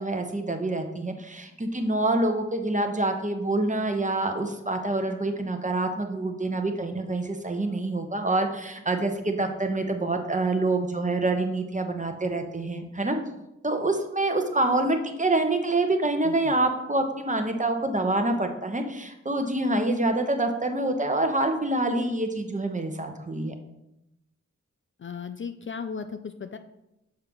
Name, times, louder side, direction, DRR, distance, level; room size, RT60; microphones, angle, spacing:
voice 1, 0.0-13.2 13.6-23.5, right 2 dB, 25° right, 5 dB, 0.9 m, -26 dB
voice 2, 25.0-26.6, left 6 dB, 40° left, 8 dB, 0.4 m, -36 dB
6.7 x 4.5 x 3.6 m, 0.88 s
cardioid pair, 50°, 30 cm